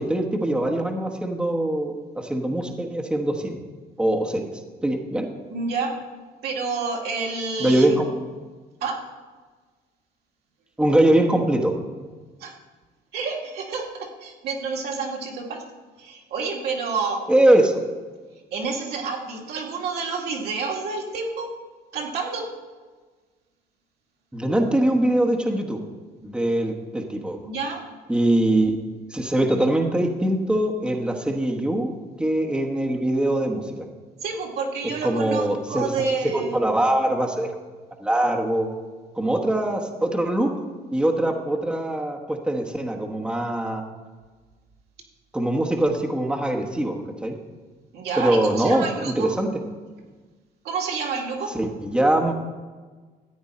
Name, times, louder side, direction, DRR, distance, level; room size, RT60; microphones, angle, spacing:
voice 1, 0.0-3.6 4.0-4.5 4.8-5.3 7.6-8.1 10.8-11.8 17.3-17.8 24.3-25.8 26.2-27.4 28.1-28.8 29.1-31.9 32.2-33.7 35.0-36.0 36.3-37.5 38.0-38.7 39.2-40.5 40.9-43.8 45.3-47.4 48.2-49.5 51.5-52.3, right 1 dB, 5° right, 1 dB, 1.1 m, -22 dB
voice 2, 5.5-6.0 6.4-8.0 8.8-9.0 12.4-12.5 13.1-15.6 16.0-17.2 18.5-21.5 21.9-22.5 27.4-27.8 34.2-36.6 47.9-49.3 50.6-51.5, right 4 dB, 70° right, -1 dB, 2.2 m, -29 dB
14.0 x 8.7 x 4.2 m, 1.4 s
cardioid pair, 110°, 17 cm